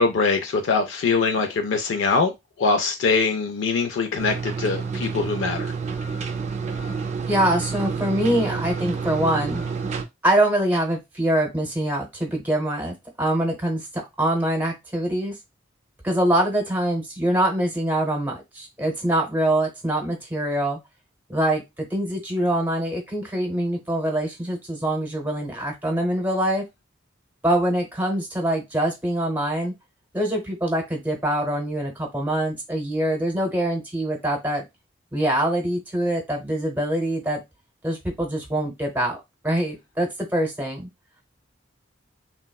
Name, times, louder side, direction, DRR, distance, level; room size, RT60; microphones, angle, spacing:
voice 1, 0.0-2.3 2.6-5.7, left 4 dB, 75° left, 0.4 m, -22 dB
sound 1, 4.2-10.0, right 5 dB, 35° right, 0.3 m, -29 dB
voice 2, 7.3-9.6 10.2-15.3 16.0-20.8 21.3-26.6 27.4-29.7 30.1-34.6 35.1-37.4 37.8-40.9, right 1 dB, 10° right, 0.8 m, -24 dB
3.4 x 2.0 x 2.2 m
head